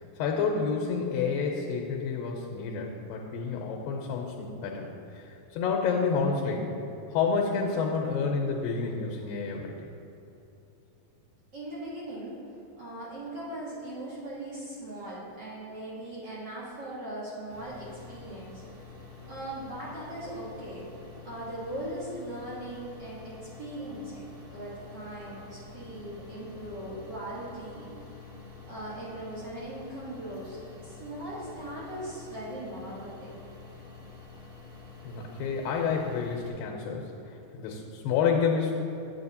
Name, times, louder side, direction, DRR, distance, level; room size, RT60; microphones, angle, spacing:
voice 1, 0.0-4.9 5.1-6.7 7.1-9.7 35.1-38.7, left 5 dB, 90° left, 1 dB, 2.4 m, -29 dB
voice 2, 11.5-12.4 12.8-18.6 19.3-20.9 21.2-27.9 28.7-30.6 30.8-33.4, right 1 dB, 55° right, -8 dB, 1.2 m, -39 dB
sound 1, 17.5-36.5, left 4 dB, 85° right, 3.2 m, -48 dB
9.3 x 7.6 x 2.8 m, 2.8 s
omnidirectional pair, 4.0 m